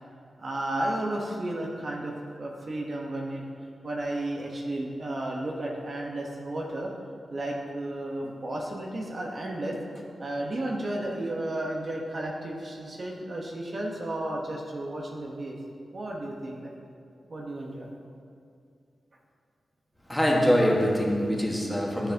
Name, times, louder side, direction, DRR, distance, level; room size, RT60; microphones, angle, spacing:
voice 1, 0.4-3.4 3.8-6.9 7.3-9.8 10.2-15.5 15.9-16.7 17.3-17.9, right 1 dB, 50° right, -2 dB, 1.2 m, -33 dB
voice 2, 20.1-22.1, equal, 10° left, -2 dB, 1.6 m, -24 dB
11.5 x 6.9 x 2.9 m, 2.4 s
cardioid pair, 65°, 0 cm